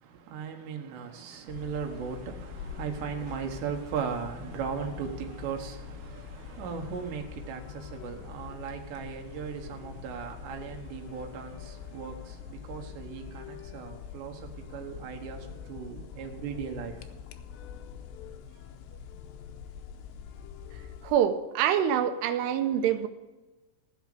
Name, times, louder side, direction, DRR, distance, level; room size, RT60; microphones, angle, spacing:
voice 1, 0.0-17.1, right 6 dB, 70° right, 3.2 m, -37 dB
sound 1, 1.5-21.2, left 8 dB, 85° left, 2.5 m, -44 dB
voice 2, 21.0-23.1, right 9 dB, 85° right, 2.4 m, -25 dB
15.5 x 5.7 x 7.7 m
omnidirectional pair, 5.8 m